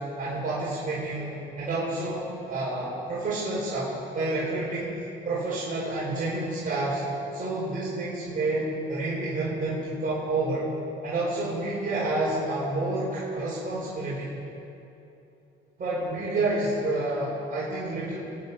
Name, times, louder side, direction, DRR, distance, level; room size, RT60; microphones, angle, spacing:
voice 1, 0.2-7.0 7.3-10.7 11.0-14.3 15.8-18.2, right 2 dB, 45° right, -8 dB, 4.9 m, -29 dB
24.0 x 9.4 x 6.3 m, 2.9 s
cardioid pair, 90°, 20 cm